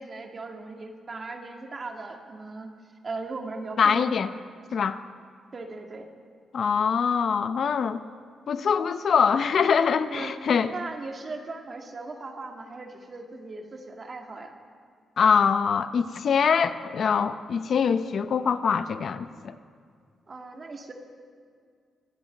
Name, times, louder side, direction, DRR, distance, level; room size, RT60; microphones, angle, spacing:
voice 1, 0.0-2.7 3.0-4.1 5.5-6.1 10.0-14.6 20.3-20.9, right 3 dB, 40° right, 3 dB, 2.0 m, -38 dB
voice 2, 3.8-4.3 4.7-5.0 6.5-8.0 8.5-10.7 15.2-19.5, left 6 dB, 60° left, 12 dB, 0.6 m, -23 dB
24.5 x 8.6 x 6.5 m, 2.1 s
cardioid pair, 85°, 0 cm